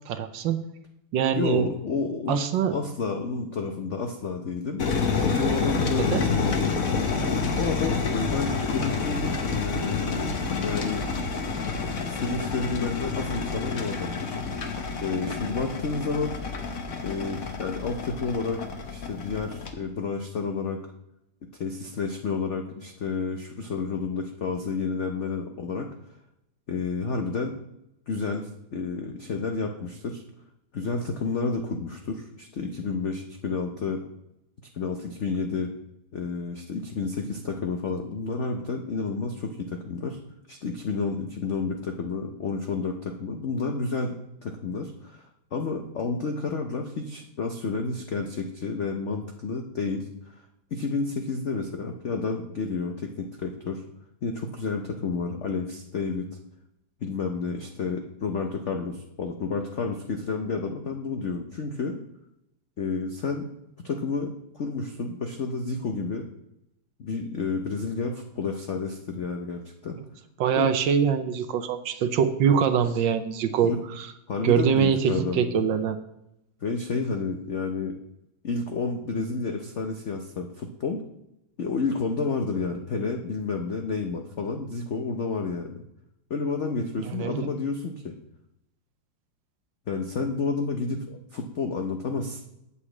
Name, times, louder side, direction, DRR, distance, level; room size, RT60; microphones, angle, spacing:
voice 1, 0.1-0.6 1.1-1.7 2.3-2.8 6.0-6.3 70.4-74.1 74.4-76.0 87.0-87.5, right 7 dB, 70° right, 9 dB, 1.4 m, -24 dB
voice 2, 1.4-4.8 5.2-6.8 7.5-11.1 12.1-14.4 15.0-16.4 17.0-20.8 21.6-25.9 26.7-27.6 28.1-30.2 30.7-34.0 34.7-35.7 36.1-40.2 40.5-50.1 50.7-53.8 54.2-56.3 57.0-62.0 62.8-63.5 63.8-66.3 67.0-70.0 70.5-70.7 73.6-73.8 74.3-75.6 76.6-78.0 78.4-81.0 81.6-85.8 86.3-88.1 89.9-92.4, left 4 dB, 75° left, 4 dB, 0.6 m, -30 dB
sound 1, 4.8-19.7, left 4 dB, 50° left, 1.2 m, -29 dB
8.5 x 4.9 x 7.3 m, 0.86 s
omnidirectional pair, 2.3 m